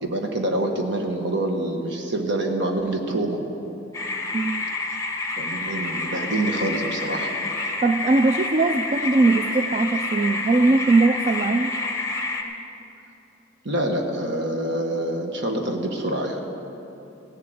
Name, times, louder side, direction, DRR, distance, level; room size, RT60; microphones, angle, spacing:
voice 1, 0.0-3.4 5.4-7.3 13.6-16.4, right 1 dB, 60° right, 3 dB, 1.5 m, -26 dB
sound 1, 3.9-12.4, left 2 dB, 15° left, 1.2 m, -28 dB
voice 2, 4.3-4.7 7.8-11.7, right 3 dB, 35° right, 7 dB, 0.3 m, -20 dB
16.5 x 7.7 x 7.9 m, 2.9 s
head